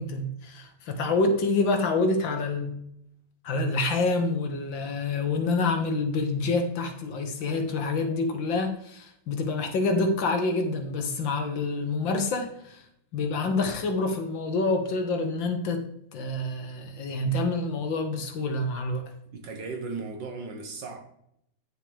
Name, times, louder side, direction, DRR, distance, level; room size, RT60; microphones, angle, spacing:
voice 1, 0.0-2.8 3.4-12.9 13.1-19.1, left 3 dB, 65° left, 6 dB, 1.6 m, -27 dB
voice 2, 19.3-21.0, right 4 dB, 60° right, 4 dB, 1.7 m, -36 dB
9.5 x 6.5 x 3.4 m, 0.75 s
omnidirectional pair, 2.4 m